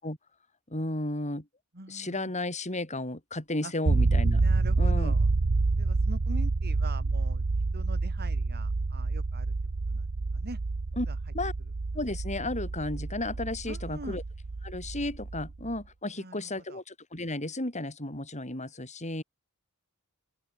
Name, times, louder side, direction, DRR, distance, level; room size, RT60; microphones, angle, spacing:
voice 1, 0.7-1.5 1.9-4.4 4.8-5.2 11.0-11.1 11.3-11.5 11.9-14.2 14.6-19.2, left 2 dB, 30° left, 7.6 m, -33 dB
voice 2, 1.7-2.3 3.6-3.7 4.4-5.3 5.7-7.4 7.7-9.5 9.9-10.0 10.3-10.6 11.1-11.2 13.6-14.2 16.1-16.8, right 2 dB, 45° right, 4.3 m, -44 dB
sound 1, 3.9-15.8, right 3 dB, 70° right, 0.8 m, -28 dB
open air
head